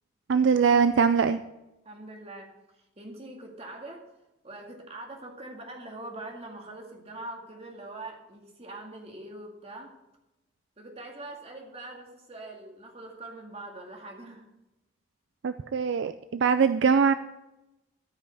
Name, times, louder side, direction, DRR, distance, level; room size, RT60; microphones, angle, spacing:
voice 1, 0.3-1.4 15.4-17.1, right 6 dB, 65° right, 11 dB, 0.4 m, -22 dB
voice 2, 1.8-4.0 4.4-10.0 10.8-14.5, right 2 dB, 30° right, 1 dB, 2.1 m, -43 dB
13.5 x 5.6 x 6.4 m, 0.96 s
head